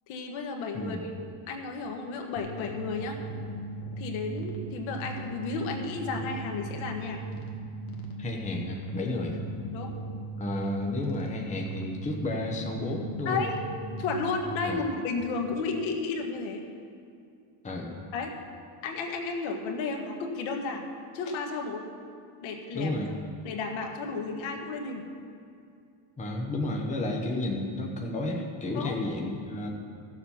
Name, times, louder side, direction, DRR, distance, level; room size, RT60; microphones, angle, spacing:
voice 1, 0.1-1.1 1.5-3.2 4.0-7.2 9.7-9.9 13.2-13.6 14.0-16.6 18.1-18.3 18.8-20.8 21.1-21.9 22.4-22.9 23.4-25.1 28.7-29.0, left 4 dB, 70° left, 3 dB, 1.6 m, -33 dB
sound 1, 2.4-14.5, right 2 dB, 45° left, 1.6 m, -38 dB
voice 2, 8.2-9.4 10.4-13.4 14.6-14.8 17.6-17.9 22.7-23.1 26.2-29.7, left 2 dB, 15° left, 0 dB, 1.0 m, -32 dB
15.0 x 7.3 x 5.6 m, 2.4 s
cardioid pair, 160°, 49 cm